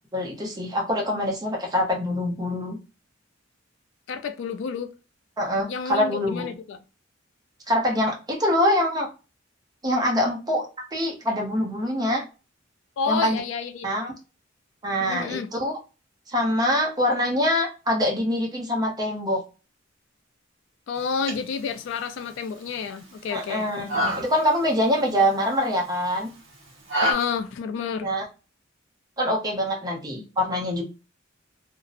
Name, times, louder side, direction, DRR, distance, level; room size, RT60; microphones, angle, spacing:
voice 1, 0.1-2.8 5.4-6.5 7.7-9.1 9.8-10.7 10.9-12.2 13.1-13.4 13.8-14.1 14.8-15.7 16.3-19.4 23.3-26.3 28.0-28.2 29.2-30.8, left 1 dB, 20° right, 0.7 m, -24 dB
voice 2, 4.1-4.9 5.7-6.8 13.0-13.9 15.0-15.5 20.9-23.7 27.0-28.1, left 6 dB, 65° left, 0.3 m, -30 dB
sound 1, 21.0-27.1, equal, 70° right, 1.1 m, -31 dB
2.6 x 2.0 x 2.4 m
head